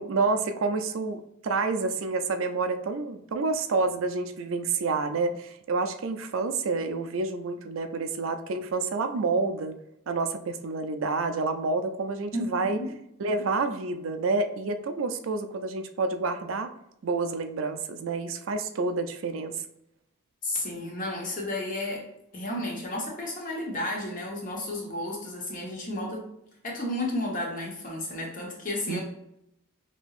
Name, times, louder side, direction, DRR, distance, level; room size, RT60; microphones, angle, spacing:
voice 1, 0.0-9.8 10.1-12.8 13.2-16.7 17.0-19.6 28.9-29.0, right 3 dB, 70° right, 8 dB, 0.4 m, -28 dB
voice 2, 12.3-12.9 20.4-22.0 22.3-26.2 26.6-29.0, left 1 dB, 40° left, -1 dB, 1.1 m, -32 dB
5.2 x 2.9 x 2.4 m, 0.81 s
head